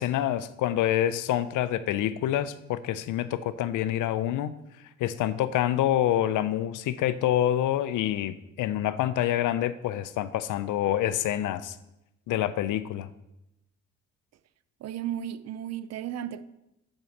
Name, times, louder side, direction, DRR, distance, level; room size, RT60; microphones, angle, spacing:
voice 1, 0.0-4.5 5.0-11.8 12.3-13.1, left 12 dB, 80° left, 0.6 m, -27 dB
voice 2, 14.8-16.4, right 10 dB, 60° right, 0.6 m, -34 dB
7.9 x 5.5 x 7.2 m
cardioid pair, 90°, 30 cm